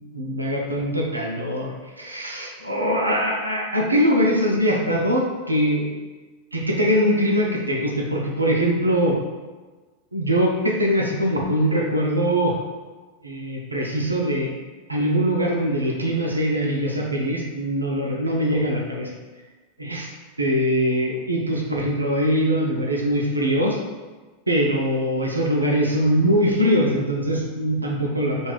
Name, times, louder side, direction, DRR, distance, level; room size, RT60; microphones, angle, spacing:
voice 1, 0.1-5.9 6.5-9.2 10.1-12.5 13.2-14.6 14.9-19.1 19.8-20.1 20.4-23.8 24.5-28.5, equal, 80° right, -1 dB, 0.4 m, -22 dB
2.4 x 2.3 x 3.2 m, 1.3 s
figure-of-eight pair, 90°, 0 cm